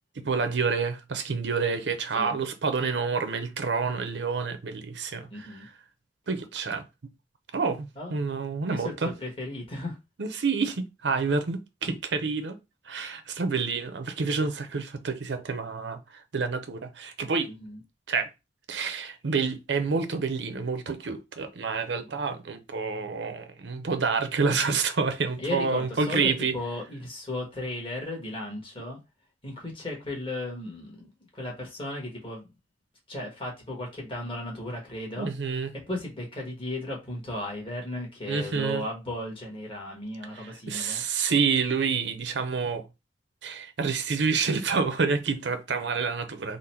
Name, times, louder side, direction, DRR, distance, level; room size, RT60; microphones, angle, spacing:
voice 1, 0.2-5.7 6.3-6.8 7.5-9.1 10.2-12.6 12.9-17.5 18.1-18.3 18.7-26.6 35.2-35.7 38.3-38.8 40.3-42.9 43.4-46.6, right 5 dB, 80° right, 0.6 m, -28 dB
voice 2, 5.3-5.7 8.0-8.1 8.7-10.0 11.8-11.9 17.5-17.8 25.4-29.0 29.4-32.5 33.1-35.3 35.9-41.0, left 1 dB, 30° left, 1.3 m, -35 dB
3.8 x 2.1 x 4.3 m
head